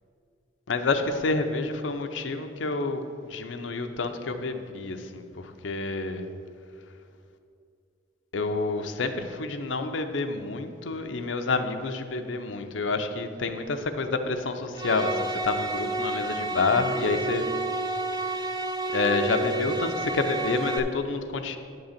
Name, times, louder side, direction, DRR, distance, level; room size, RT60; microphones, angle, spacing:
voice 1, 0.7-6.3 8.3-17.4 18.9-21.6, left 3 dB, 80° left, 7 dB, 0.6 m, -28 dB
sound 1, 14.7-20.8, right 2 dB, 20° right, 0.5 m, -30 dB
9.5 x 3.9 x 7.2 m, 2.4 s
head